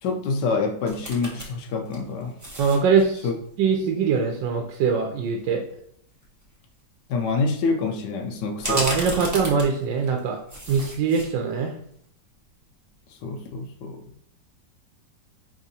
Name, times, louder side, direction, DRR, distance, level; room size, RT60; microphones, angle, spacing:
voice 1, 0.0-2.4 3.2-3.3 7.1-8.9 9.2-9.3 13.1-14.0, left 4 dB, 75° left, 3 dB, 1.2 m, -27 dB
sound 1, 0.9-1.5 1.8-3.0 5.7-5.8 6.2-6.4 8.6-10.2 10.5-11.3 11.7-11.8, equal, 25° right, 0.3 m, -32 dB
voice 2, 2.6-3.3 3.6-5.6 8.7-11.7, right 5 dB, 85° right, 3 dB, 1.3 m, -22 dB
4.7 x 3.5 x 2.7 m, 0.68 s
omnidirectional pair, 2.0 m